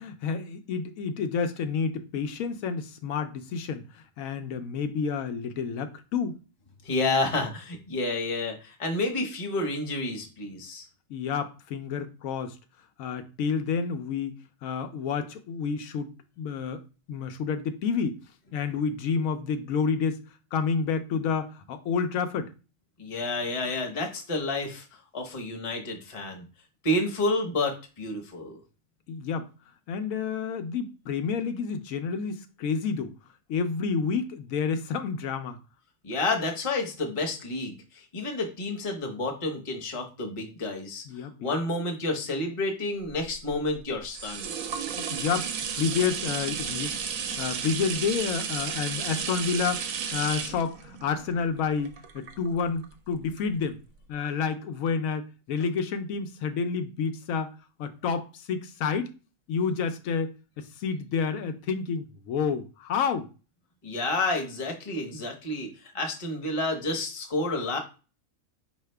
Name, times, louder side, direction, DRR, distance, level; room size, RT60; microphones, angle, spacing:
voice 1, 0.0-6.4 11.1-12.6 13.0-14.3 14.6-16.1 16.4-16.8 17.1-18.2 18.5-20.2 20.5-22.5 29.1-29.5 29.9-33.1 33.5-35.6 41.1-41.5 44.9-49.8 50.1-53.8 54.1-57.5 57.8-59.2 59.5-63.3, left 6 dB, 90° left, 1.0 m, -29 dB
voice 2, 6.8-10.8 23.0-24.9 25.1-26.4 26.8-28.6 36.0-41.0 41.4-44.5 63.8-67.8, left 2 dB, 30° left, 0.7 m, -30 dB
sound 1, 43.1-52.8 53.4-53.5, right 7 dB, 80° right, 1.0 m, -33 dB
4.7 x 2.8 x 3.3 m
omnidirectional pair, 1.4 m